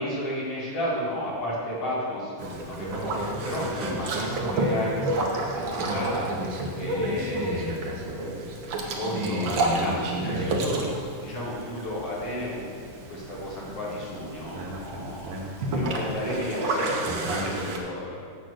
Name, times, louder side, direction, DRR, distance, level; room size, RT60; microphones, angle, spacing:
voice 1, 0.0-8.0 8.8-10.8 11.2-12.6 13.1-18.3, left 1 dB, 50° left, -6 dB, 2.9 m, -33 dB
Boat Water vehicle, 2.4-17.8, right 1 dB, 85° right, 1.0 m, -30 dB
7.5 x 7.5 x 6.3 m, 2.1 s
omnidirectional pair, 3.7 m